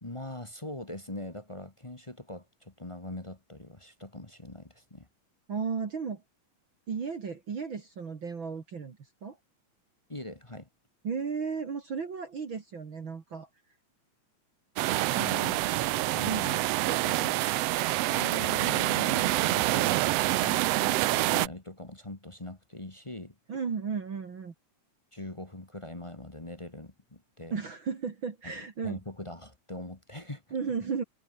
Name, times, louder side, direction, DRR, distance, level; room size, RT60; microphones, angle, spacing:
voice 1, 0.0-5.1 10.1-10.7 15.0-17.5 18.1-23.3 25.1-27.5 28.4-30.4, left 1 dB, 15° left, 1.0 m, -42 dB
voice 2, 5.5-6.2 6.9-9.0 9.2-9.4 11.0-13.5 15.1-15.4 16.2-16.4 23.5-24.5 27.5-29.0 30.5-31.0, right 6 dB, 45° right, 2.7 m, -34 dB
sound 1, 14.8-21.5, right 17 dB, 75° right, 1.5 m, -27 dB
omnidirectional pair, 3.3 m